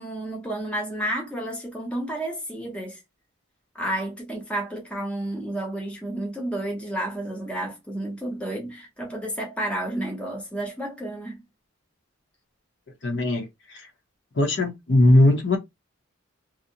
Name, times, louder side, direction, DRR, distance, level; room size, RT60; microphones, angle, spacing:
voice 1, 0.0-3.0 3.7-11.4, right 1 dB, 5° left, 0.6 m, -31 dB
voice 2, 13.0-13.9 14.3-15.6, left 1 dB, 60° left, 0.7 m, -20 dB
2.5 x 2.0 x 2.6 m
head